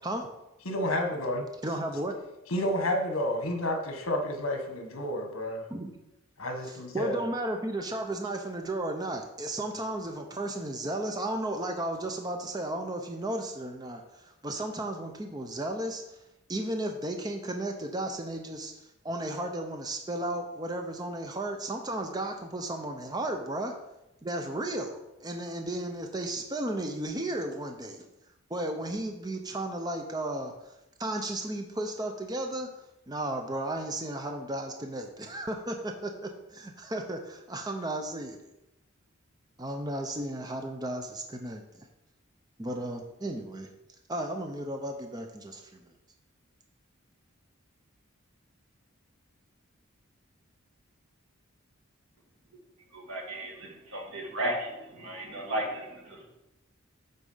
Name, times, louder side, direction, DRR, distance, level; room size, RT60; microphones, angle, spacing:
voice 1, 0.6-1.4 2.5-5.6 6.4-7.2, left 1 dB, 75° left, 3 dB, 1.4 m, -30 dB
voice 2, 1.6-2.1 5.7-5.9 6.7-16.0 16.5-23.7 24.2-28.1 28.5-30.7 31.0-32.7 33.1-38.5 39.6-41.9 42.6-43.7 44.1-45.8, right 1 dB, 20° right, 4 dB, 0.6 m, -34 dB
voice 3, 52.9-56.3, right 1 dB, 75° right, -1 dB, 2.1 m, -35 dB
8.3 x 4.1 x 5.6 m, 0.92 s
head